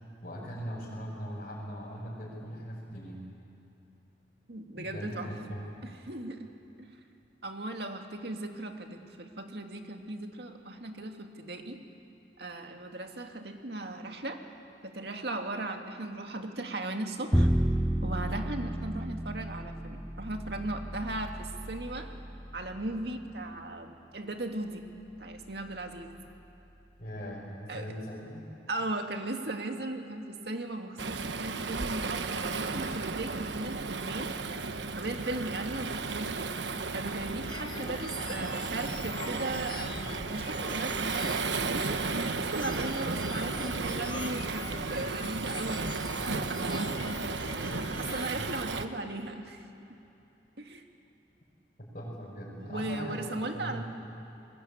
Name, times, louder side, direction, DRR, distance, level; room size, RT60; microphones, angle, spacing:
voice 1, 0.2-3.2 4.7-5.9 27.0-28.4 48.3-48.5 51.9-53.8, equal, 45° left, -7 dB, 5.7 m, -40 dB
voice 2, 4.5-5.3 5.8-6.5 6.8-7.0 7.4-11.8 12.4-14.4 14.8-17.5 18.0-22.1 22.5-24.8 25.2-26.2 27.7-27.9 28.7-34.4 35.0-41.9 42.4-47.2 47.8-49.6 49.9-50.0 50.6-50.8 52.6-53.8, right 2 dB, 65° right, 4 dB, 2.1 m, -37 dB
Bowed string instrument, 17.3-23.5, right 1 dB, 5° right, 0.6 m, -32 dB
Waves surf, 31.0-48.9, right 4 dB, 85° right, 1.1 m, -34 dB
sound 1, 37.5-48.3, left 4 dB, 25° left, 0.8 m, -44 dB
29.5 x 21.5 x 8.7 m, 2.9 s
head